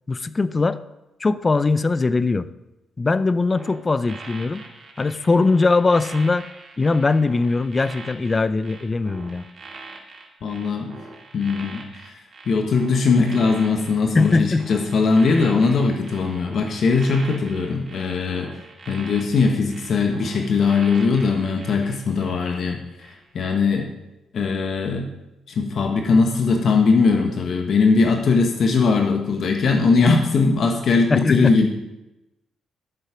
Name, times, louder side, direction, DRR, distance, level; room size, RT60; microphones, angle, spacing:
voice 1, 0.1-0.8 1.2-2.5 3.0-4.6 5.0-6.4 6.8-9.4 14.1-14.7 31.1-31.5, left 3 dB, 30° left, 16 dB, 0.6 m, -20 dB
sound 1, 3.5-22.7 23.0-23.3, right 3 dB, 40° right, 2.3 m, -42 dB
voice 2, 10.4-10.9 11.3-12.1 12.5-18.5 18.9-23.1 23.3-23.9 24.3-25.1 25.5-31.7, left 4 dB, 60° left, 3 dB, 1.4 m, -20 dB
12.0 x 7.4 x 5.2 m, 0.97 s
cardioid pair, 80°, 0 cm